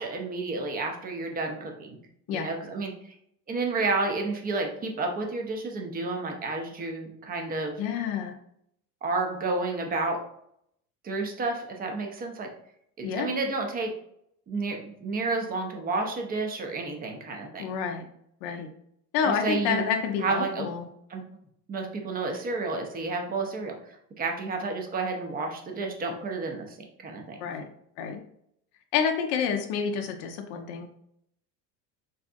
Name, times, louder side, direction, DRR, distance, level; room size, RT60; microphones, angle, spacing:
voice 1, 0.0-2.0 2.3-3.2 3.5-7.8 9.0-10.2 11.0-12.5 13.0-13.9 14.5-17.6 19.2-19.9 20.2-20.7 21.1-21.2 21.7-27.4, right 3 dB, 20° right, 3 dB, 0.5 m, -31 dB
voice 2, 7.8-8.3 13.0-13.3 17.6-18.1 18.4-18.7 19.1-20.9 27.4-27.7 28.0-28.2 28.9-30.9, left 7 dB, 50° left, 5 dB, 0.5 m, -28 dB
3.2 x 2.7 x 2.3 m, 0.71 s
figure-of-eight pair, 75°, 49 cm